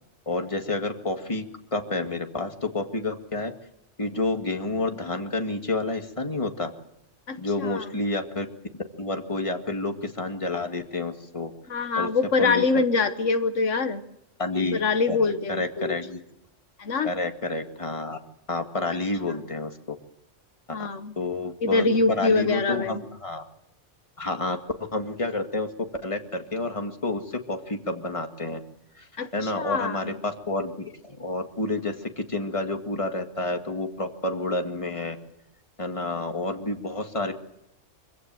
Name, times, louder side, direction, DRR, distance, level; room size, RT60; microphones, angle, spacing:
voice 1, 0.3-1.5 1.7-3.5 4.0-6.7 7.4-8.5 9.0-11.5 12.0-12.1 12.4-12.8 14.4-14.8 15.1-16.2 17.0-18.2 18.5-20.0 20.7-20.8 21.2-23.4 24.2-24.6 24.9-28.6 29.0-29.1 29.3-35.2 35.8-37.3, left 2 dB, 25° left, 4 dB, 2.1 m, -29 dB
voice 2, 7.3-7.9 11.7-14.0 14.7-15.9 16.8-17.1 19.3-19.4 20.7-21.1 21.6-23.0 29.2-30.0, left 4 dB, 80° left, 9 dB, 1.6 m, -24 dB
25.5 x 16.5 x 7.7 m, 0.85 s
omnidirectional pair, 1.2 m